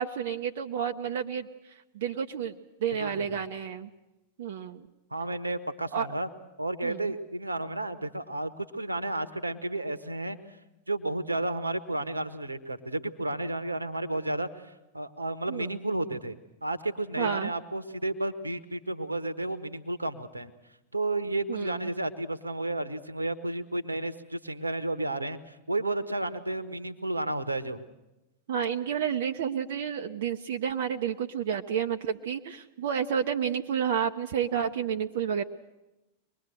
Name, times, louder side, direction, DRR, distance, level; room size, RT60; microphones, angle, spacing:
voice 1, 0.0-1.5 1.9-2.5 2.8-3.9 4.4-4.9 5.9-6.1 6.8-7.1 15.5-15.8 17.2-17.5 21.5-21.9 28.5-35.4, right 8 dB, 55° right, 5 dB, 0.8 m, -30 dB
voice 2, 3.0-3.4 5.1-6.3 6.6-10.4 10.9-16.4 16.6-20.5 20.9-27.8, right 2 dB, 80° right, 14 dB, 1.2 m, -32 dB
24.0 x 21.0 x 7.9 m, 1.0 s
figure-of-eight pair, 90°, 0 cm